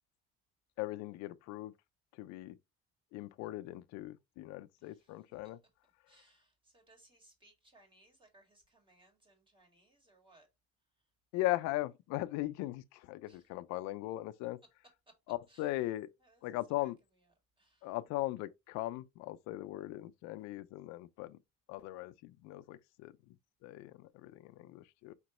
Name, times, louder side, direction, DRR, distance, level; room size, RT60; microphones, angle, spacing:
voice 1, 0.8-1.7 2.1-2.6 3.1-5.6 11.3-14.6 15.3-16.1 16.4-17.0 17.8-21.4 21.7-23.3 23.6-25.1, left 17 dB, 65° left, 0.5 m, -39 dB
voice 2, 4.8-5.6 6.1-10.5 13.3-13.5 15.1-15.2 15.5-15.9 16.2-16.9 17.2-17.9, right 1 dB, 15° right, 1.9 m, -66 dB
5.1 x 3.1 x 2.9 m
cardioid pair, 125°, 29 cm